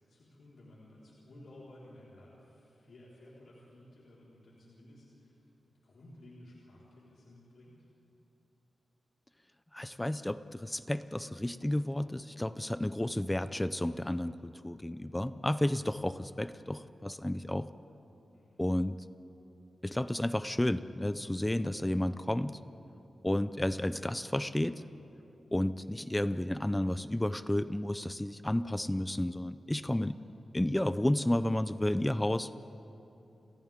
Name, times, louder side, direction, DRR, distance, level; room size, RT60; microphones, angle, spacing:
voice 1, 0.0-7.9 18.3-18.6, left 1 dB, 80° left, -7 dB, 4.4 m, -55 dB
voice 2, 9.7-17.7 18.6-19.0 19.8-22.6 23.2-24.8 25.5-30.2 30.5-32.5, left 1 dB, 10° left, 13 dB, 0.4 m, -32 dB
29.5 x 27.5 x 3.7 m, 2.9 s
wide cardioid pair, 145°, 0 cm